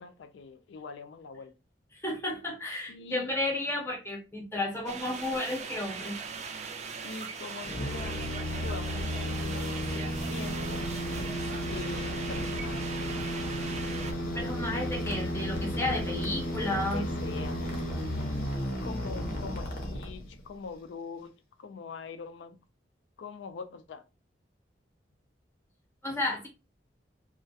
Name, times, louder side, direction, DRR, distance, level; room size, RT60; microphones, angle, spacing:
voice 1, 0.0-1.5 2.9-3.4 7.0-10.8 11.7-13.0 16.6-17.7 18.8-22.6 23.2-24.1, left 5 dB, 75° left, 0.3 m, -43 dB
voice 2, 2.0-6.2 14.3-17.0 26.0-26.5, left 1 dB, 15° left, 0.8 m, -32 dB
sound 1, 4.8-14.1, right 5 dB, 40° right, 0.3 m, -40 dB
sound 2, 7.6-20.5, equal, 55° left, 0.7 m, -33 dB
2.3 x 2.1 x 2.6 m
head